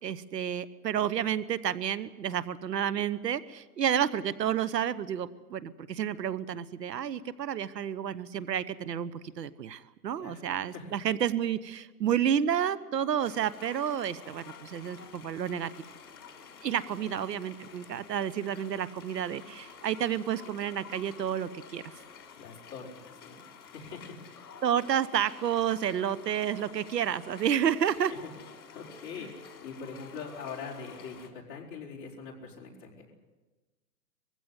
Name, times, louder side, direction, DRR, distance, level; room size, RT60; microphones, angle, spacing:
voice 1, 0.0-15.7 16.6-21.9 24.6-28.1, right 9 dB, 80° right, 16 dB, 1.2 m, -30 dB
voice 2, 10.2-10.9 22.4-24.2 24.4-24.6 28.7-33.1, left 5 dB, 30° left, -4 dB, 4.7 m, -43 dB
sound 1, 13.2-31.3, left 6 dB, 60° left, 4.0 m, -50 dB
22.5 x 16.0 x 9.7 m, 1.2 s
hypercardioid pair, 165°, 49 cm